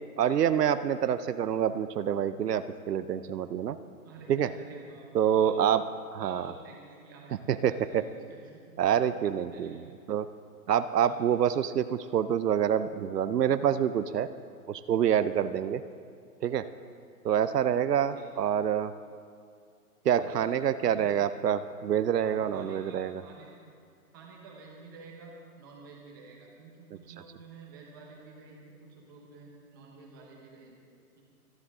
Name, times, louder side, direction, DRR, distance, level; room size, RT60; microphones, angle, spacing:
voice 1, 0.2-3.8 4.3-4.5 5.1-5.8 6.1-6.5 7.5-8.0 8.8-10.3 10.7-14.3 14.7-15.8 16.4-16.7 17.2-18.9 20.0-23.2, right 9 dB, 85° right, 12 dB, 0.8 m, -27 dB
voice 2, 4.0-5.1 5.3-5.8 6.2-7.4 7.9-8.0 8.3-8.6 9.5-9.9 10.9-11.2 17.3-17.6 18.2-18.3 20.2-20.5 20.8-21.2 22.2-23.5 24.1-31.2, right 3 dB, 15° right, -2 dB, 1.2 m, -50 dB
25.0 x 11.0 x 3.7 m, 2.3 s
hypercardioid pair, 175°, 47 cm